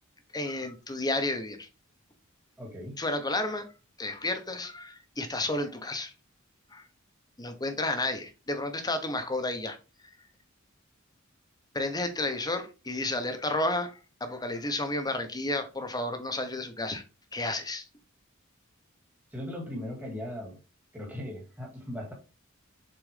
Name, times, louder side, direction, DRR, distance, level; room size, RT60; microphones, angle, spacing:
voice 1, 0.3-1.7 3.0-3.7 4.0-6.1 6.7-6.9 7.4-9.8 11.7-17.0 17.3-17.9, left 2 dB, 20° left, 1.2 m, -31 dB
voice 2, 2.6-3.0 19.3-20.6 20.9-22.1, left 1 dB, 10° right, 2.2 m, -38 dB
7.4 x 4.3 x 3.5 m
head